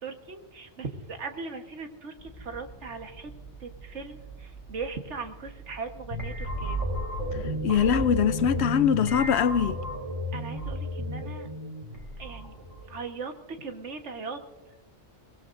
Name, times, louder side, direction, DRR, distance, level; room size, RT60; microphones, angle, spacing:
voice 1, 0.0-3.3 3.6-6.8 7.7-7.9 10.3-11.5 12.2-12.5 12.9-14.4, right 4 dB, 85° right, 1.7 m, -39 dB
sound 1, 2.2-9.8, right 6 dB, 40° left, 1.9 m, -46 dB
sound 2, 6.1-13.0, equal, 45° right, 4.0 m, -33 dB
voice 2, 7.6-9.8, left 8 dB, 70° left, 0.9 m, -23 dB
23.0 x 18.5 x 2.6 m
omnidirectional pair, 1.2 m